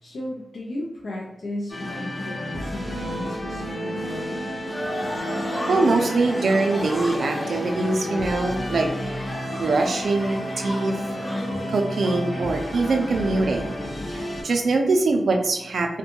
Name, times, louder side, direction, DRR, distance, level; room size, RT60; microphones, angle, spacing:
voice 1, 0.0-4.5, left 1 dB, 80° left, -4 dB, 0.4 m, -35 dB
sound 1, 1.7-14.4, equal, 35° left, 0.8 m, -31 dB
sound 2, 4.7-13.4, left 1 dB, 20° left, 0.5 m, -36 dB
voice 2, 5.7-11.0 11.7-13.8 14.1-16.0, right 3 dB, 75° right, 4 dB, 0.4 m, -23 dB
2.6 x 2.2 x 2.8 m, 0.90 s
wide cardioid pair, 165°, 0 cm